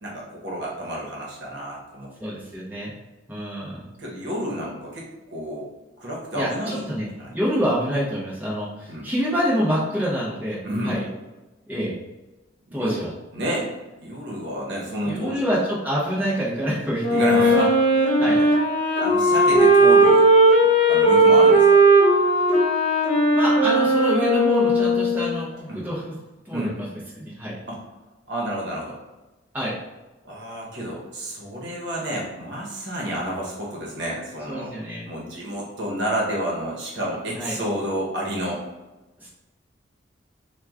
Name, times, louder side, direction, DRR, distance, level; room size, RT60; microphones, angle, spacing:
voice 1, 0.0-2.1 4.0-5.7 6.0-6.8 7.2-7.4 8.9-9.0 10.6-11.0 12.7-12.9 13.3-13.7 14.0-15.4 17.1-17.7 18.2-18.5 19.0-20.3 20.9-21.8 25.7-25.8 26.5-26.7 27.7-27.8 28.3-29.0 30.2-34.7 35.1-38.6, equal, 60° right, -3 dB, 0.9 m, -30 dB
voice 2, 2.2-2.9 3.3-3.8 6.3-7.1 7.3-10.6 10.8-11.0 11.7-11.9 12.7-13.1 15.0-17.2 17.6-17.7 18.2-18.4 23.3-26.2 26.4-27.6 29.5-29.7 34.5-35.0 37.3-37.6 39.2-39.3, equal, 10° right, -8 dB, 0.7 m, -26 dB
Wind instrument woodwind instrument, 17.0-25.4, right 1 dB, 35° left, 1.0 m, -17 dB
3.0 x 2.2 x 3.5 m, 1.1 s
head